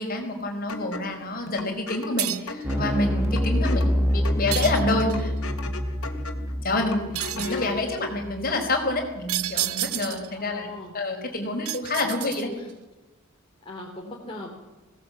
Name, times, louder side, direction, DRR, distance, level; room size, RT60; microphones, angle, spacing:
voice 1, 0.0-5.3 6.6-7.0 7.3-10.7 10.9-12.5, left 2 dB, 45° left, 3 dB, 4.7 m, -27 dB
sound 1, 0.7-7.8, left 4 dB, 85° left, 2.8 m, -38 dB
sound 2, 2.2-2.6 4.5-5.3 7.2-7.7 9.3-10.3 11.7-12.7, right 15 dB, 80° right, 0.8 m, -30 dB
sound 3, 2.6-9.1, equal, 5° right, 1.8 m, -27 dB
voice 2, 10.3-10.9 11.9-12.7 13.6-14.5, left 2 dB, 25° left, -2 dB, 3.2 m, -40 dB
21.5 x 18.0 x 8.6 m, 1.1 s
head